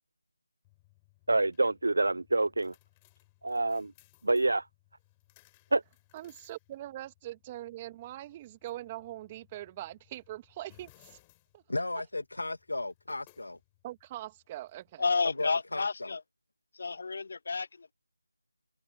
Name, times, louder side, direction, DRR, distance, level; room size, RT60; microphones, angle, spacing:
sound 1, 0.6-15.4, left 22 dB, 15° left, 6.8 m, -65 dB
voice 1, 1.3-2.7 3.4-3.9 4.2-4.6 5.7-5.8, right 2 dB, 70° right, 0.8 m, -27 dB
voice 2, 6.1-11.2 11.5-11.6 13.8-15.1, right 15 dB, 15° right, 2.0 m, -42 dB
voice 3, 11.7-13.6 15.2-16.2, left 2 dB, 80° left, 2.1 m, -35 dB
voice 4, 15.0-16.2 16.8-17.9, left 4 dB, 45° left, 1.1 m, -31 dB
open air
figure-of-eight pair, 165°, 0 cm